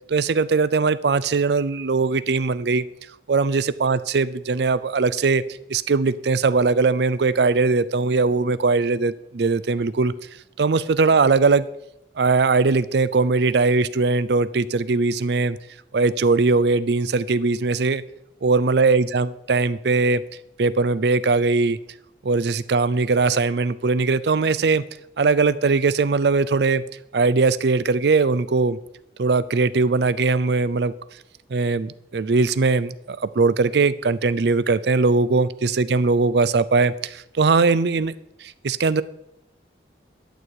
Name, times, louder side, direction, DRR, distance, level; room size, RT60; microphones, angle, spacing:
voice 1, 0.1-2.8 3.3-5.4 5.7-10.1 10.6-11.7 12.2-15.6 15.9-18.0 18.4-20.2 20.6-21.8 22.2-24.8 25.2-26.8 27.1-28.8 29.2-30.9 31.5-38.1 38.4-39.0, right 4 dB, 75° right, 16 dB, 0.5 m, -20 dB
11.5 x 4.6 x 8.1 m, 0.83 s
head